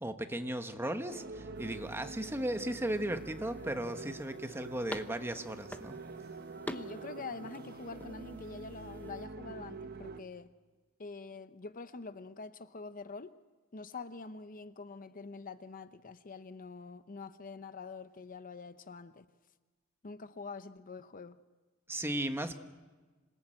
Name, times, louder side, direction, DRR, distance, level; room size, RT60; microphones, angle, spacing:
voice 1, 0.0-6.0 21.9-22.6, right 1 dB, 10° right, 1.2 m, -36 dB
sound 1, 1.1-10.2, right 3 dB, 50° right, 1.0 m, -46 dB
sound 2, 1.6-9.3, left 1 dB, 10° left, 0.9 m, -49 dB
voice 2, 6.7-10.5 11.0-13.3 13.7-19.2 20.0-21.4, left 4 dB, 40° left, 0.7 m, -45 dB
27.0 x 19.0 x 8.8 m
head